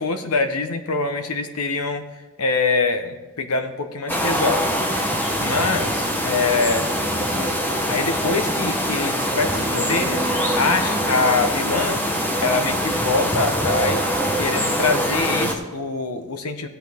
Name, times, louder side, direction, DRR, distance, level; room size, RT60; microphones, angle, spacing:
voice 1, 0.0-2.1 2.4-4.6 5.4-7.6 7.9-10.3 10.5-12.0 12.4-16.7, left 4 dB, 85° left, 7 dB, 1.1 m, -24 dB
sound 1, 4.1-15.5, equal, 10° left, 0.9 m, -23 dB
16.5 x 8.2 x 3.6 m, 1.2 s
head